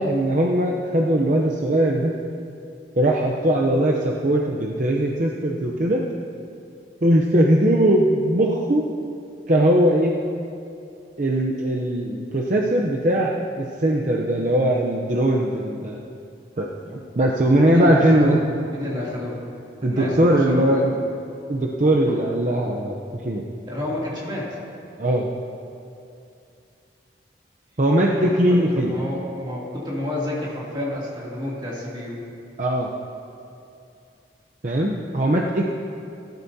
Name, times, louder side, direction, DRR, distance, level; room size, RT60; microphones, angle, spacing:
voice 1, 0.0-2.2 3.0-6.0 7.0-8.9 9.5-10.2 11.2-16.0 16.6-18.4 19.8-20.9 21.5-23.4 25.0-25.3 27.8-29.0 32.6-32.9 34.6-35.6, right 1 dB, 45° right, -1 dB, 0.7 m, -20 dB
voice 2, 17.6-18.4 18.7-19.4 19.8-20.8 22.0-22.2 23.7-24.6 28.1-32.2, left 1 dB, 25° right, -6 dB, 2.7 m, -29 dB
18.5 x 12.0 x 2.8 m, 2.6 s
head